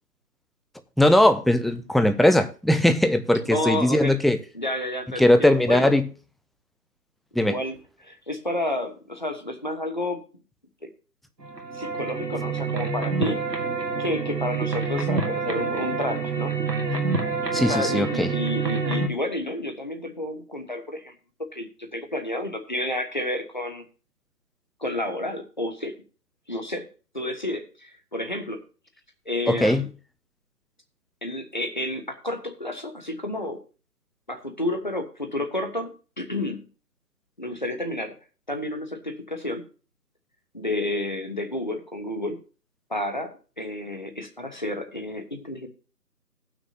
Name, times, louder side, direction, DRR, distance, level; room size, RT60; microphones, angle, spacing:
voice 1, 1.0-4.4 5.2-6.1 7.4-7.6 17.5-18.3 29.5-29.8, left 1 dB, ahead, 0.4 m, -19 dB
voice 2, 3.5-4.2 4.5-5.9 7.4-10.2 11.7-13.4 14.0-16.5 17.6-21.1 21.5-23.8 24.8-26.0 26.5-26.9 27.1-28.6 29.3-29.8 31.2-33.6 34.3-36.7 37.4-38.1 38.5-39.7 40.5-42.4 42.9-45.7, left 1 dB, 30° left, 1.1 m, -30 dB
sound 1, 11.4-19.1, right 4 dB, 85° right, 1.8 m, -27 dB
18.0 x 6.1 x 2.8 m
figure-of-eight pair, 165°, 48 cm